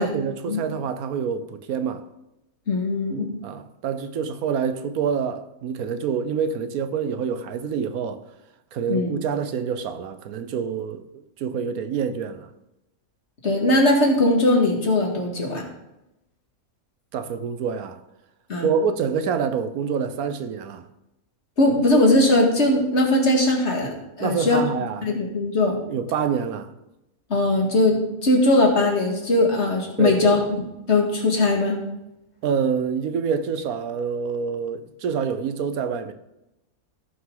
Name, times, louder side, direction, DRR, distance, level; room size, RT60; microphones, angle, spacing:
voice 1, 0.0-2.0 3.4-8.2 8.7-12.5 17.1-18.0 18.6-20.8 24.2-25.1 25.9-26.7 30.0-30.4 32.4-36.1, right 6 dB, 85° right, 1.2 m, -26 dB
voice 2, 2.7-3.4 8.9-9.1 13.4-15.6 18.5-18.7 21.6-24.6 25.0-25.8 27.3-31.8, left 2 dB, 50° left, 2.2 m, -20 dB
16.5 x 5.8 x 3.9 m
omnidirectional pair, 1.5 m